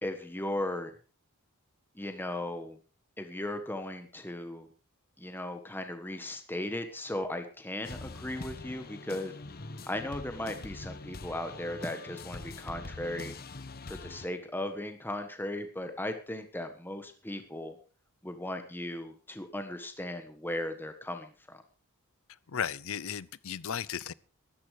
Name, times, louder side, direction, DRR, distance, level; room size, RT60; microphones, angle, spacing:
voice 1, 0.0-0.9 2.0-2.8 3.2-4.7 5.2-9.3 9.9-13.3 13.9-17.8 18.2-21.6, left 1 dB, 10° left, 1.4 m, -37 dB
sound 1, 7.8-14.3, left 3 dB, 45° left, 1.1 m, -44 dB
voice 2, 22.5-24.1, left 8 dB, 65° left, 0.6 m, -35 dB
13.5 x 13.0 x 4.9 m
head